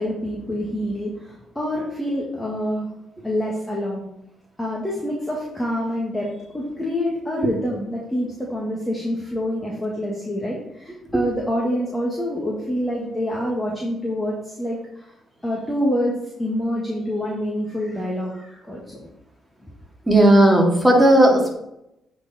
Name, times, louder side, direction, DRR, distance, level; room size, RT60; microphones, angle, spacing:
voice 1, 0.0-2.9 3.2-4.0 4.6-15.1 15.4-19.0, equal, 10° left, -4 dB, 1.8 m, -26 dB
voice 2, 20.1-21.6, right 1 dB, 10° right, 0 dB, 2.2 m, -14 dB
8.5 x 4.5 x 4.3 m, 0.82 s
cardioid pair, 90°, 0 cm